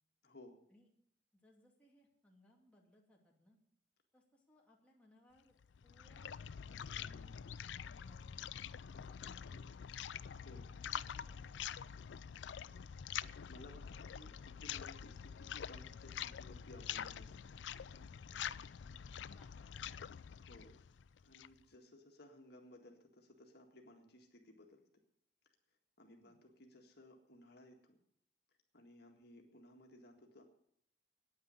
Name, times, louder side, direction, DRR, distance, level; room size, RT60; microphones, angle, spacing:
voice 1, 0.2-0.6 9.5-9.6 10.3-10.7 13.5-17.5 17.9-18.2 20.3-20.8 21.2-24.8 26.0-28.0 28.7-30.4, left 1 dB, 65° left, 2 dB, 1.8 m, -59 dB
voice 2, 1.4-3.6 4.1-5.6 5.8-6.4 6.7-8.5 8.9-9.7 10.7-11.9 18.3-18.6 19.2-20.0 26.2-26.4, left 1 dB, 5° left, -2 dB, 2.5 m, -68 dB
sound 1, 5.6-21.6, left 8 dB, 80° left, 0.4 m, -46 dB
9.5 x 9.4 x 9.6 m, 0.72 s
head